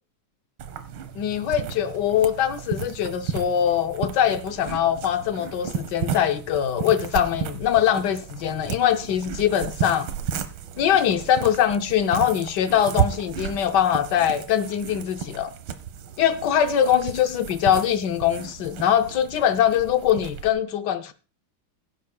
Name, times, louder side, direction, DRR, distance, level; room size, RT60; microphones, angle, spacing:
sound 1, 0.6-20.5, right 8 dB, 75° right, 1.8 m, -33 dB
voice 1, 1.2-10.1 10.8-15.5 16.2-21.1, left 9 dB, 70° left, 1.1 m, -22 dB
21.5 x 8.4 x 2.2 m
omnidirectional pair, 2.3 m